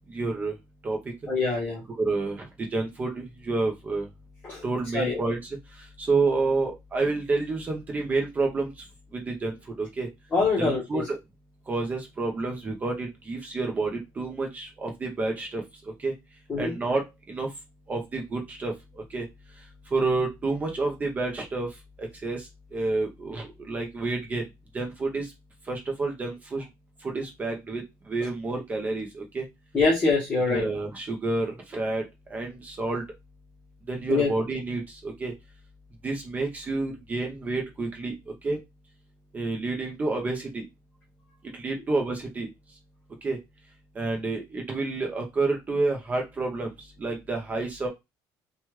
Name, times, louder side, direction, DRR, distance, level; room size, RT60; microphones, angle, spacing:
voice 1, 0.1-0.5 0.8-1.0 2.0-2.5 2.7-4.1 4.6-5.5 6.0-8.7 9.1-10.1 10.6-11.2 11.7-15.6 16.0-16.1 16.6-17.0 17.3-17.5 17.9-18.7 19.1-19.3 19.9-21.7 22.0-24.5 24.7-25.3 25.7-26.6 27.0-27.8 28.1-29.5 30.5-32.0 32.3-33.0 33.9-35.3 36.0-38.1 38.4-38.6 39.3-40.6 41.5-42.5 43.2-43.4 44.0-46.7 47.0-47.9, right 3 dB, 20° right, 2 dB, 0.6 m, -29 dB
voice 2, 1.3-1.8 4.4-4.6 4.9-5.2 10.3-11.0 16.5-16.7 29.7-30.6 34.1-34.3, left 3 dB, 20° left, -4 dB, 0.9 m, -24 dB
3.1 x 2.2 x 3.0 m, 0.21 s
cardioid pair, 175°, 8 cm